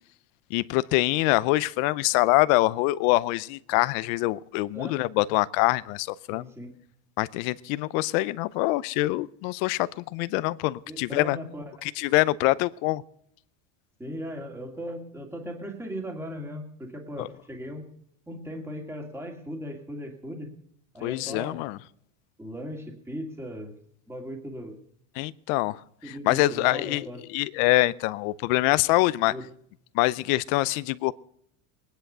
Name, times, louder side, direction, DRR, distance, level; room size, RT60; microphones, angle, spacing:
voice 1, 0.5-6.4 7.2-11.4 11.8-13.0 17.2-17.3 21.0-21.8 25.2-25.8 26.1-27.1 27.3-29.3 29.9-31.1, left 19 dB, 60° left, 0.7 m, -24 dB
voice 2, 6.3-6.7 10.9-11.8 14.0-17.8 18.3-20.5 20.9-21.6 22.4-23.8 24.1-24.8 26.0-27.2 29.3-29.5, equal, 5° right, 2.2 m, -38 dB
20.0 x 10.5 x 6.7 m
cardioid pair, 150°, 43 cm